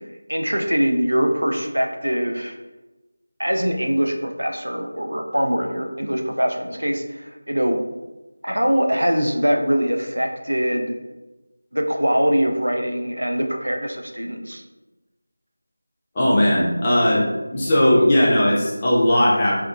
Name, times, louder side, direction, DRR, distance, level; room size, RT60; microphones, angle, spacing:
voice 1, 0.3-2.5 3.4-7.8 8.4-10.9 11.7-14.6, equal, 90° right, 4 dB, 0.4 m, -22 dB
voice 2, 16.1-17.3 17.5-19.6, left 1 dB, 20° left, -6 dB, 0.5 m, -17 dB
2.7 x 2.3 x 2.3 m, 1.1 s
figure-of-eight pair, 170°, 0 cm